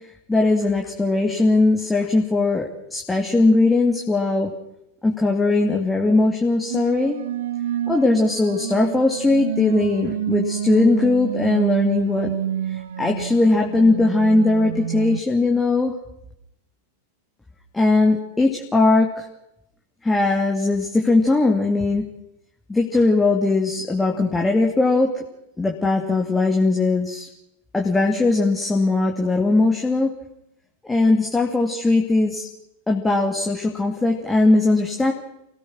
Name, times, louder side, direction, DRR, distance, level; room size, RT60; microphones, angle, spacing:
voice 1, 0.3-4.5 5.0-7.2 7.9-12.3 12.7-15.9 17.7-19.2 20.0-22.1 22.7-25.2 25.6-27.3 27.7-30.1 30.9-32.5 32.9-35.1, left 2 dB, 10° left, 1 dB, 2.7 m, -19 dB
sound 1, 6.7-15.2, right 10 dB, 60° right, 0.8 m, -28 dB
29.0 x 18.0 x 6.3 m, 0.82 s
figure-of-eight pair, 90°, 0 cm